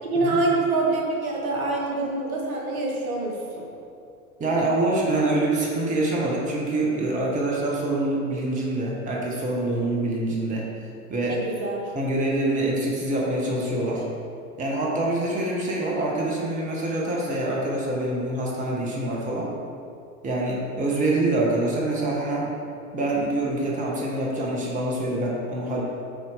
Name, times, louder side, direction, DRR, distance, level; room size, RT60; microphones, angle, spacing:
voice 1, 0.0-3.7 11.3-11.9, right 2 dB, 65° right, -1 dB, 1.3 m, -25 dB
voice 2, 4.4-10.7 11.1-11.4 11.9-14.0 14.6-19.5 20.2-22.5 22.9-25.8, right 2 dB, 15° right, -3 dB, 0.9 m, -25 dB
8.1 x 4.2 x 3.4 m, 2.5 s
figure-of-eight pair, 85°, 45 cm